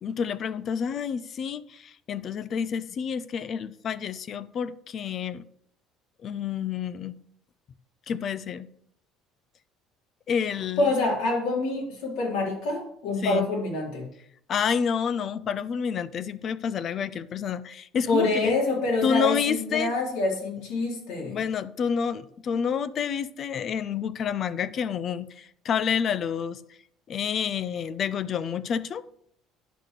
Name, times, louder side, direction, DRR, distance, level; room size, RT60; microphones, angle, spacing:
voice 1, 0.0-5.4 6.2-7.2 8.1-8.7 10.3-10.9 13.2-13.5 14.5-18.5 19.0-19.9 20.6-20.7 21.2-26.6 27.1-29.0, left 7 dB, 40° left, 16 dB, 0.5 m, -29 dB
voice 2, 10.8-14.1 18.1-21.4, left 2 dB, 80° left, -2 dB, 3.8 m, -26 dB
10.0 x 4.1 x 6.6 m, 0.70 s
cardioid pair, 125°, 0 cm